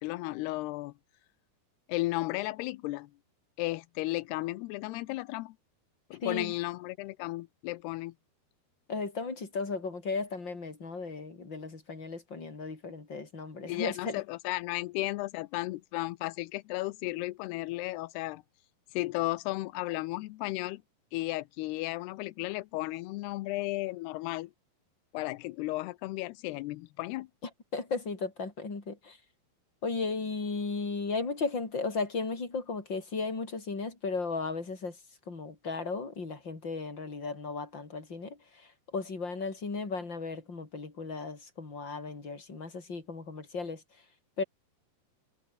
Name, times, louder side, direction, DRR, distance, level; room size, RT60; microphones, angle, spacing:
voice 1, 0.0-0.9 1.9-3.1 3.6-5.6 6.1-8.1 13.7-18.4 18.9-20.8 21.1-24.5 25.1-27.3, left 19 dB, 90° left, 2.7 m, -34 dB
voice 2, 6.2-6.5 8.9-14.2 27.7-29.2 29.8-35.0 35.3-43.8 44.4-44.5, left 4 dB, 25° left, 5.3 m, -35 dB
omnidirectional pair, 4.8 m